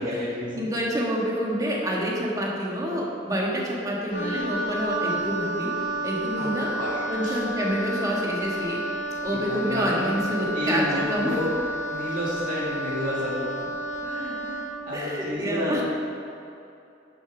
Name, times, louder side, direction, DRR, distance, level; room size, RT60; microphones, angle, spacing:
voice 1, 0.0-0.7 6.4-6.5 6.8-7.4 9.3-10.1 10.5-13.7 14.0-14.6 14.9-15.8, equal, 45° right, -7 dB, 2.0 m, -30 dB
voice 2, 0.6-6.7 7.1-8.8 9.2-11.4 14.9-15.8, equal, 20° right, -3 dB, 1.7 m, -28 dB
Wind instrument woodwind instrument, 4.1-14.8, right 1 dB, 70° left, 2.2 m, -31 dB
10.5 x 7.0 x 5.0 m, 2.7 s
head